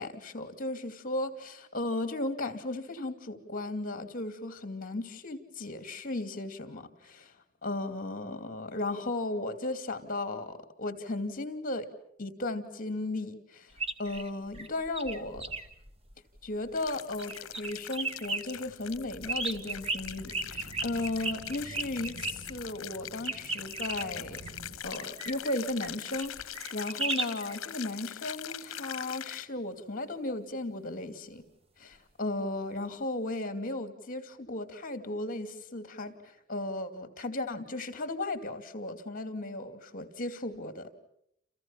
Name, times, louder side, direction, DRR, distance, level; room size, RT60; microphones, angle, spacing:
voice 1, 0.0-7.3 7.6-11.9 12.2-13.7 14.0-15.4 16.4-24.4 24.8-31.4 31.8-40.9, left 2 dB, 45° left, 9 dB, 2.7 m, -35 dB
sound 1, 13.7-16.9 17.2-18.4 18.9-22.3 23.2-27.6 33.4-33.5, right 3 dB, 30° right, 1.8 m, -36 dB
sound 2, 16.8-29.4, left 11 dB, 75° left, 1.1 m, -43 dB
sound 3, 18.0-24.8, right 1 dB, 75° right, 2.3 m, -50 dB
29.5 x 29.0 x 5.8 m, 0.76 s
head